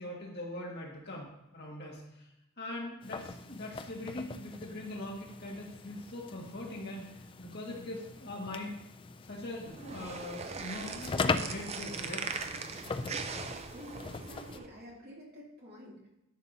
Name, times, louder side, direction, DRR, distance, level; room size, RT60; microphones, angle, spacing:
voice 1, 0.0-2.3 2.6-8.7 9.2-12.5, left 1 dB, 50° left, -2 dB, 1.9 m, -42 dB
sound 1, 3.0-14.6, left 4 dB, 25° left, 0.3 m, -40 dB
sound 2, 9.7-14.7, right 4 dB, 30° right, 0.5 m, -40 dB
voice 2, 13.7-16.1, equal, 45° right, -4 dB, 2.6 m, -50 dB
11.0 x 6.7 x 2.7 m, 0.89 s
head